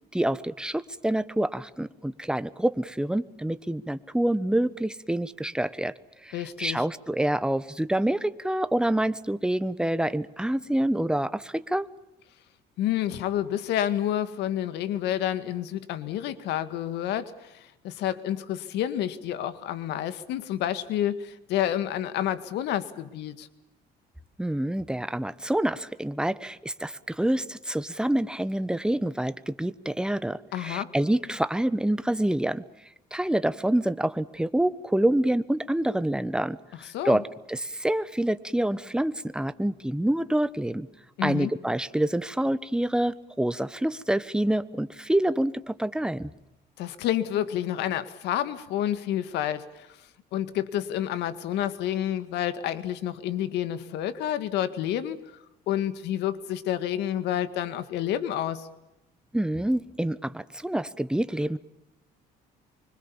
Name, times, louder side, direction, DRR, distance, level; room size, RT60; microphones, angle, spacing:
voice 1, 0.1-5.9 6.2-11.9 24.4-32.6 33.1-40.9 41.2-46.3 59.3-61.6, right 1 dB, 5° right, 14 dB, 1.1 m, -27 dB
voice 2, 6.3-6.9 12.8-23.5 30.5-30.9 36.9-37.2 41.2-41.5 46.8-50.0 50.3-55.2 55.7-58.7, left 11 dB, 85° left, 13 dB, 2.0 m, -29 dB
25.0 x 25.0 x 7.2 m, 0.93 s
cardioid pair, 110°, 17 cm